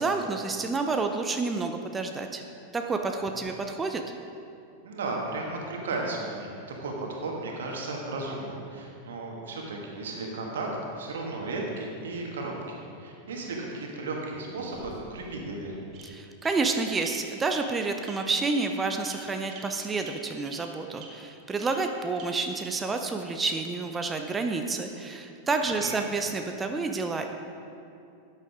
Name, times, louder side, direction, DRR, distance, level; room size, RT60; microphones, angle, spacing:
voice 1, 0.0-2.4 2.7-4.1 16.0-27.3, right 3 dB, 15° right, 5 dB, 0.6 m, -29 dB
voice 2, 4.8-10.7 10.9-15.8 25.7-26.1, right 2 dB, 60° right, -1 dB, 1.9 m, -35 dB
Bird vocalization bird call bird song, 14.5-15.3 15.9-16.0 16.4-16.5 17.0-17.1 17.5-17.6 18.0-18.2 18.5-18.6 19.0-19.2 19.5-19.6 20.0-20.1 20.4-20.6 21.0-21.1 21.6-21.7 22.2-22.3 22.6-22.7, right 7 dB, 35° right, 1.7 m, -45 dB
13.0 x 9.1 x 3.6 m, 2.6 s
figure-of-eight pair, 90°, 0 cm